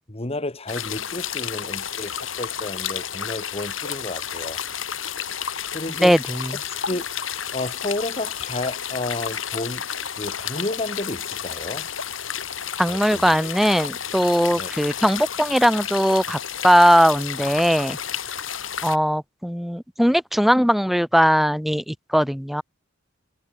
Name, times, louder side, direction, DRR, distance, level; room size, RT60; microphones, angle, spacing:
voice 1, 0.1-4.6 5.7-6.1 6.9-9.8 10.2-11.9 12.9-13.3 14.6-14.7, left 2 dB, 30° left, 1.8 m, -31 dB
sound 1, 0.7-19.0, left 8 dB, 90° left, 6.7 m, -31 dB
voice 2, 6.0-6.5 12.8-18.0 18.8-22.6, equal, ahead, 2.2 m, -19 dB
head